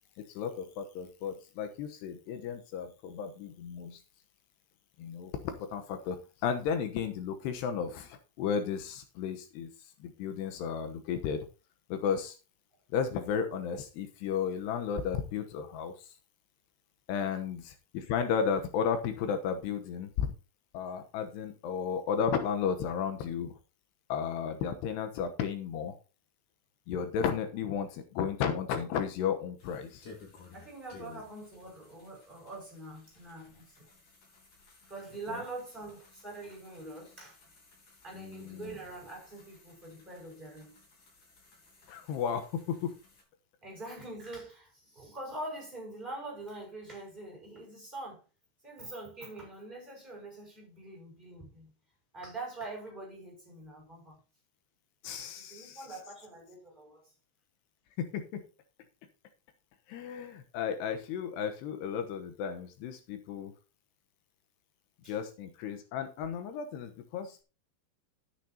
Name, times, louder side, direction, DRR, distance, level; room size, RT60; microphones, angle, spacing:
voice 1, 0.2-4.0 5.0-6.2 6.4-11.5 11.9-12.4 12.9-16.1 17.1-20.3 20.7-23.5 24.1-26.0 26.9-30.0 31.0-31.2 38.1-38.8 41.9-43.0 55.0-55.9 58.0-58.4 59.9-63.5 65.1-67.4, left 7 dB, 80° left, 3.1 m, -34 dB
sound 1, 29.6-43.2, left 4 dB, 50° left, 5.5 m, -58 dB
voice 2, 30.5-33.9 34.9-37.4 38.0-40.8 43.6-48.2 48.6-51.7 52.1-54.2 55.2-57.1 65.0-65.2, right 2 dB, 10° right, 5.6 m, -44 dB
12.0 x 10.0 x 2.9 m
omnidirectional pair, 4.8 m